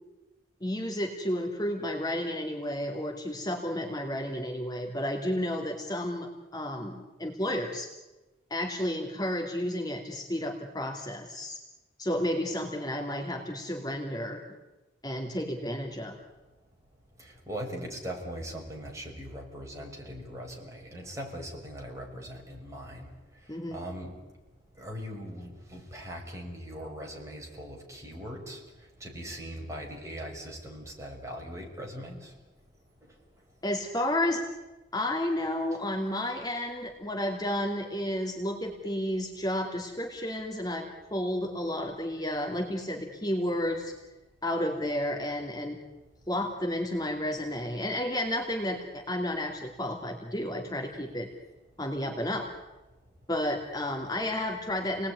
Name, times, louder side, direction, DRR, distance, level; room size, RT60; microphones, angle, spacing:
voice 1, 0.6-7.9 8.5-11.6 12.0-14.4 15.0-16.2 23.5-23.8 33.6-34.5 34.9-43.9 44.4-45.8 46.3-51.3 51.8-52.5 53.3-55.1, left 1 dB, 20° left, 2 dB, 2.6 m, -32 dB
voice 2, 16.4-33.7 35.7-35.8 46.0-46.2 51.7-51.8 52.9-53.3, equal, 15° right, 0 dB, 6.0 m, -41 dB
29.5 x 20.0 x 9.7 m, 1.1 s
head